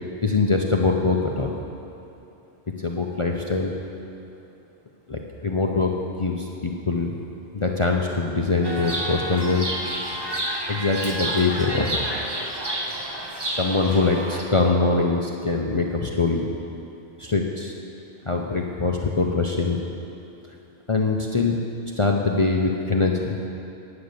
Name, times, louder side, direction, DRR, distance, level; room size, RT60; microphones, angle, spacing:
voice 1, 0.2-1.5 2.8-3.7 5.1-7.1 7.5-9.7 10.7-12.0 13.5-16.5 17.2-17.7 18.3-19.8 20.9-21.6 22.0-23.4, left 3 dB, 35° left, 0 dB, 0.5 m, -23 dB
Chirp tweet, 8.6-14.4, right 1 dB, 20° right, 1.0 m, -29 dB
9.7 x 9.2 x 6.7 m, 2.8 s
omnidirectional pair, 1.2 m